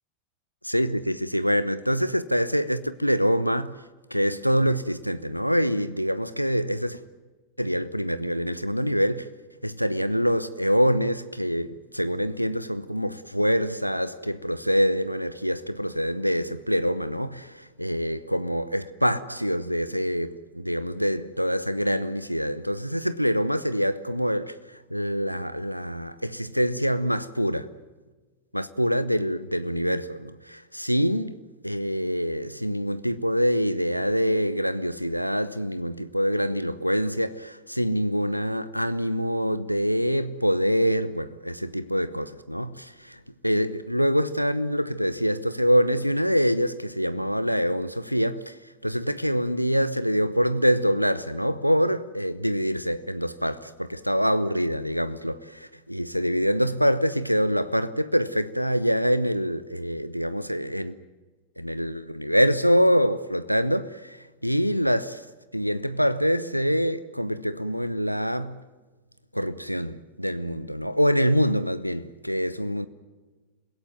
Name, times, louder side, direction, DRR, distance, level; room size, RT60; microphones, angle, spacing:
voice 1, 0.6-3.8 4.1-7.0 7.6-9.3 9.6-27.7 28.5-31.4 31.6-61.0 61.6-65.3 65.5-68.6 69.3-72.9, equal, 90° left, 0.7 m, -25 dB
27.5 x 17.0 x 9.3 m
figure-of-eight pair, 90°, 0 cm